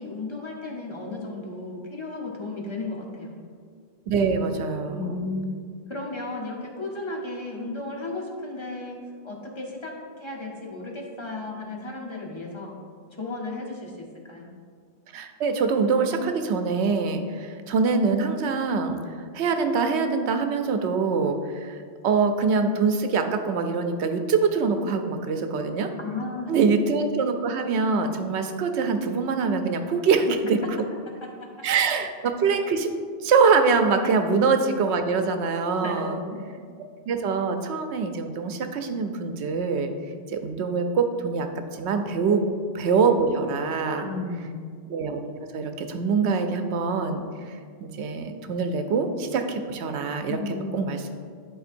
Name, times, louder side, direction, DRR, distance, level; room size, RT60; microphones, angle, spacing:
voice 1, 0.0-3.4 4.9-5.5 5.9-12.7 13.2-14.5 26.0-26.7 31.2-31.5 35.8-36.4 42.3-42.4 44.0-44.6 50.3-50.9, left 2 dB, 30° left, -1 dB, 0.9 m, -34 dB
voice 2, 4.1-5.2 15.1-19.0 19.3-21.8 22.0-25.9 26.5-30.6 31.6-32.9 33.2-36.2 37.1-39.9 40.3-42.4 42.8-44.1 44.9-45.2 45.5-47.3 47.8-50.4 50.7-51.1, right 5 dB, 80° right, 6 dB, 0.9 m, -24 dB
10.5 x 4.3 x 2.5 m, 2.1 s
omnidirectional pair, 1.1 m